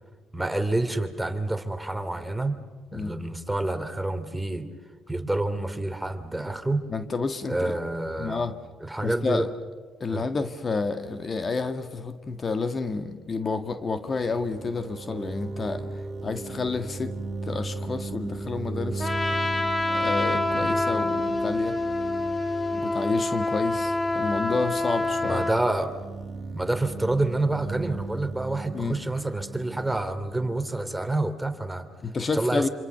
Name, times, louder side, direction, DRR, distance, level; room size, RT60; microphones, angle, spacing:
voice 1, 0.3-2.6 2.9-4.7 5.1-6.8 7.5-8.5 8.8-9.5 10.1-10.3 25.2-25.9 26.5-31.9 32.3-32.7, right 2 dB, 10° right, 8 dB, 2.8 m, -28 dB
voice 2, 6.9-7.7 8.2-8.5 9.0-9.5 10.0-15.9 16.2-17.2 17.4-19.1 19.9-21.8 22.7-25.5 28.7-29.0 32.0-32.7, left 4 dB, 40° left, 8 dB, 1.8 m, -30 dB
sound 1, 14.1-31.7, right 3 dB, 40° right, 2.6 m, -37 dB
Trumpet, 19.0-25.6, left 2 dB, 20° left, 2.8 m, -27 dB
27.0 x 26.5 x 6.9 m, 1.5 s
supercardioid pair, 60°, 0 cm